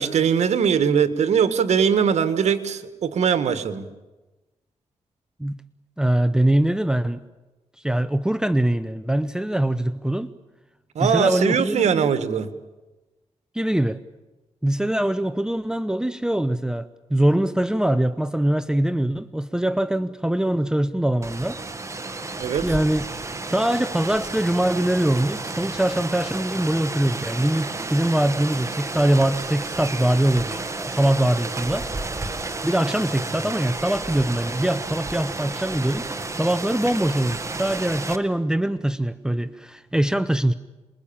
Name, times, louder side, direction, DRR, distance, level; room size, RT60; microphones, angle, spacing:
voice 1, 0.0-3.8 10.9-12.5 22.4-22.6, right 7 dB, 85° right, 1.7 m, -21 dB
voice 2, 6.0-7.2 7.8-10.3 11.0-12.1 13.5-14.0 14.6-21.6 22.6-23.1 23.5-31.9 32.6-36.0 36.3-40.5, right 1 dB, 5° right, 0.8 m, -23 dB
Rain, 21.2-38.2, right 3 dB, 25° right, 1.8 m, -31 dB
27.5 x 21.5 x 8.8 m
cardioid pair, 95°, 11 cm